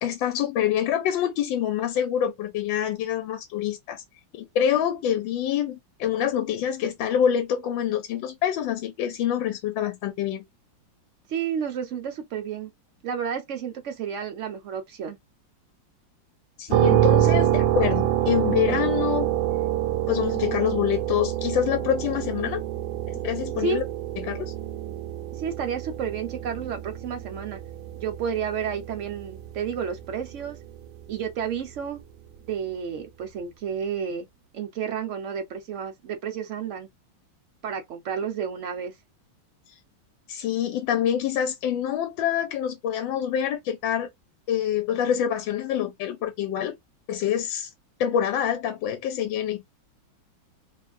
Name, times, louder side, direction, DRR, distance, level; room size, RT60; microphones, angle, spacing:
voice 1, 0.0-4.0 4.3-10.4 16.6-19.3 20.1-22.6 23.1-23.8 24.2-24.5 40.3-44.1 44.5-46.8 47.1-47.7 48.0-49.6, left 9 dB, 75° left, 1.3 m, -26 dB
voice 2, 11.3-12.7 13.0-15.2 23.6-23.8 25.3-27.6 28.0-30.6 31.1-32.0 32.5-34.3 34.5-36.9 37.6-38.9, right 7 dB, 70° right, 0.7 m, -31 dB
sound 1, 16.7-30.5, right 12 dB, 85° right, 1.4 m, -26 dB
3.3 x 2.3 x 2.3 m
omnidirectional pair, 2.1 m